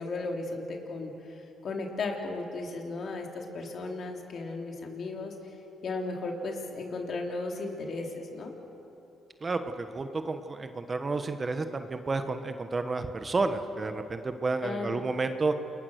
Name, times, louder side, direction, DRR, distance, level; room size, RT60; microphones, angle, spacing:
voice 1, 0.0-5.6 5.8-8.5 14.6-15.0, left 3 dB, 55° left, 1 dB, 3.6 m, -35 dB
voice 2, 9.4-15.5, right 3 dB, 30° right, 8 dB, 1.2 m, -31 dB
28.5 x 22.0 x 6.5 m, 2.9 s
cardioid pair, 90°, 0 cm